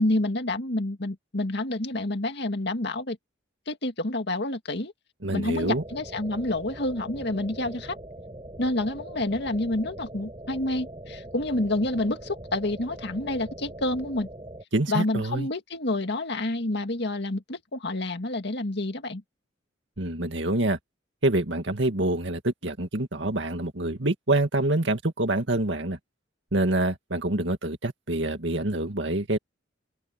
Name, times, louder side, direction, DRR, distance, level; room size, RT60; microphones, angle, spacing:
voice 1, 0.0-3.2 3.7-4.9 5.3-8.0 8.6-14.3 14.9-19.2, left 2 dB, 65° left, 2.1 m, -28 dB
voice 2, 5.2-5.8 14.7-15.5 20.0-20.8 21.2-26.0 26.5-29.4, right 2 dB, 70° right, 2.2 m, -26 dB
sound 1, 5.6-14.6, right 1 dB, 25° right, 6.7 m, -42 dB
open air
head